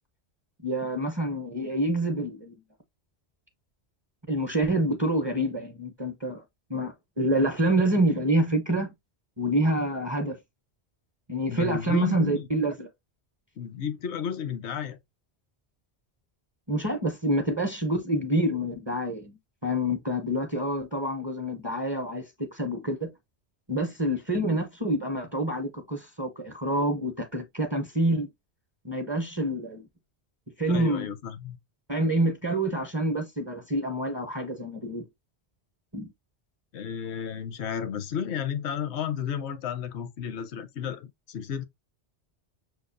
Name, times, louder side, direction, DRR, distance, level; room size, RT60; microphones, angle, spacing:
voice 1, 0.6-2.6 4.3-6.4 6.7-8.9 9.4-10.4 11.3-12.9 16.7-23.1 23.7-28.3 28.8-29.8 30.6-31.1 31.9-35.1 35.9-36.1, right 1 dB, 30° right, 0.6 m, -27 dB
voice 2, 11.5-12.5 13.6-15.0 30.7-31.6 36.7-41.7, left 8 dB, 80° left, 1.0 m, -32 dB
6.4 x 2.3 x 2.5 m
omnidirectional pair, 1.1 m